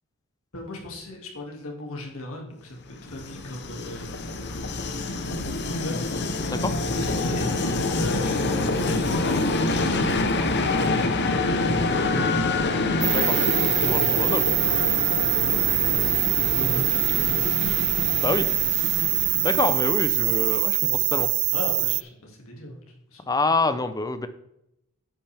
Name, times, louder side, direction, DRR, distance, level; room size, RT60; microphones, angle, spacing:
voice 1, 0.5-6.6 7.2-7.5 7.9-10.0 16.4-16.9 17.7-17.8 21.5-23.2, left 1 dB, 65° left, 0 dB, 2.4 m, -38 dB
Train, 2.9-20.7, left 2 dB, 50° left, 0.9 m, -26 dB
sound 1, 13.0-22.0, right 23 dB, 85° right, 0.3 m, -23 dB
voice 2, 13.8-14.5 18.2-18.5 19.4-21.3 23.3-24.3, left 2 dB, 15° left, 10 dB, 0.6 m, -26 dB
10.0 x 8.6 x 3.5 m, 0.84 s
head